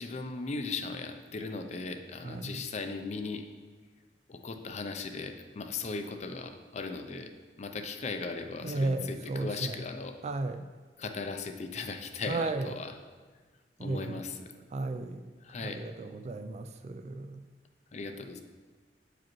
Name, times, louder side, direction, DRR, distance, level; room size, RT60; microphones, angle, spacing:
voice 1, 0.0-3.4 4.3-7.3 7.6-10.2 11.0-13.0 13.8-14.6 15.4-15.8 17.9-18.4, left 4 dB, 40° left, 7 dB, 0.4 m, -38 dB
voice 2, 2.2-2.6 8.6-9.8 10.2-10.6 12.3-12.7 13.8-14.2 14.7-15.3 15.6-17.4, right 2 dB, 40° right, 9 dB, 0.3 m, -34 dB
8.3 x 5.0 x 3.0 m, 1.4 s
head